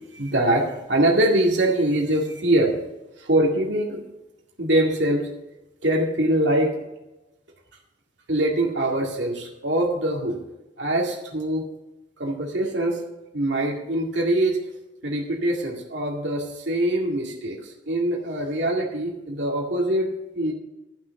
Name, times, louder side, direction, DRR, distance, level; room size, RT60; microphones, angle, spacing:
voice 1, 0.1-2.7 3.2-4.0 4.6-5.2 5.8-6.7 8.3-10.4 10.8-11.6 12.2-13.0 13.3-14.6 15.0-20.5, right 1 dB, 80° right, -2 dB, 2.1 m, -23 dB
13.0 x 6.2 x 7.0 m, 0.97 s
head